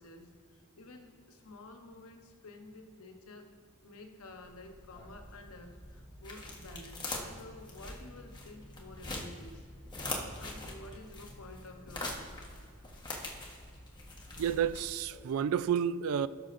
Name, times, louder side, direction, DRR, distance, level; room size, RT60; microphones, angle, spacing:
voice 1, 0.0-3.5 3.8-9.7 10.4-12.3, left 2 dB, 80° left, 1.0 m, -51 dB
sound 1, 4.2-15.3, left 2 dB, 20° left, 1.2 m, -43 dB
voice 2, 14.4-16.3, right 8 dB, 70° right, 0.3 m, -30 dB
17.5 x 6.1 x 2.5 m
head